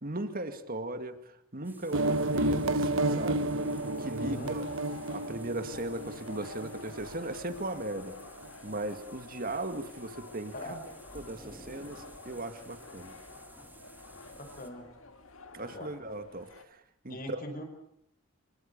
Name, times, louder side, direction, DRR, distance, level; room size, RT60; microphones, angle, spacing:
voice 1, 0.0-1.2 1.5-3.5 3.8-4.6 5.1-8.2 8.6-10.8 11.1-13.1 15.5-16.8 17.0-17.4, right 1 dB, 45° right, 8 dB, 2.2 m, -37 dB
sound 1, 1.6-14.7, right 2 dB, 10° right, 2.6 m, -54 dB
sound 2, 1.9-7.3, right 2 dB, 65° right, 1.0 m, -31 dB
sound 3, 3.6-16.6, left 3 dB, 75° left, 2.2 m, -50 dB
voice 2, 4.2-4.5 10.5-10.8 14.4-14.9 15.6-15.9 17.1-17.6, left 1 dB, 45° left, 6 dB, 5.3 m, -41 dB
25.5 x 22.5 x 7.1 m, 0.70 s
head